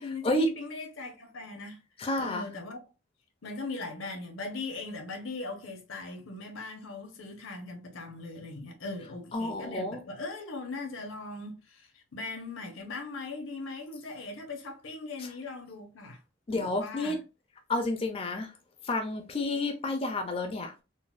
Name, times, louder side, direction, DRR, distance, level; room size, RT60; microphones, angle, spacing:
voice 1, 0.0-1.8 2.2-2.8 3.4-16.2 16.5-17.2, left 3 dB, 90° left, 0.8 m, -39 dB
voice 2, 2.0-2.4 9.3-10.0 16.5-17.2 17.7-18.5 18.9-20.8, left 2 dB, 30° left, 0.3 m, -30 dB
4.0 x 2.0 x 2.4 m
head